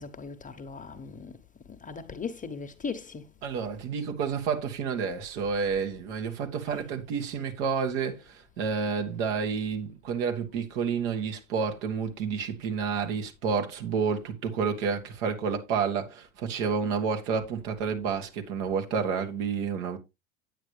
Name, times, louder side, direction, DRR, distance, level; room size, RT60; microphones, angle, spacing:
voice 1, 0.0-1.3 1.8-3.2 6.7-6.8, left 5 dB, 20° left, 1.0 m, -38 dB
voice 2, 3.4-20.0, right 6 dB, 60° right, 2.2 m, -30 dB
9.0 x 8.7 x 3.4 m
hypercardioid pair, 80°, 41 cm